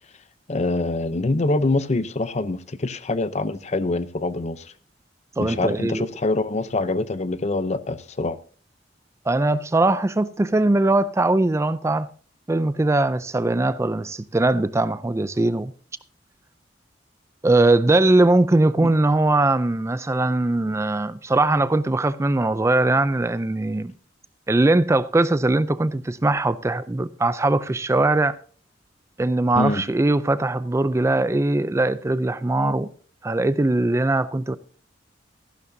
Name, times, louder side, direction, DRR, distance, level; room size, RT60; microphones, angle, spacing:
voice 1, 0.5-4.7 5.4-8.4 18.8-18.9 29.6-29.8, left 2 dB, 40° left, 0.6 m, -25 dB
voice 2, 5.4-6.1 9.3-12.1 12.5-15.7 17.4-23.9 24.5-28.4 29.2-32.9 33.2-34.6, right 2 dB, 15° right, 0.4 m, -20 dB
14.5 x 11.5 x 2.7 m
head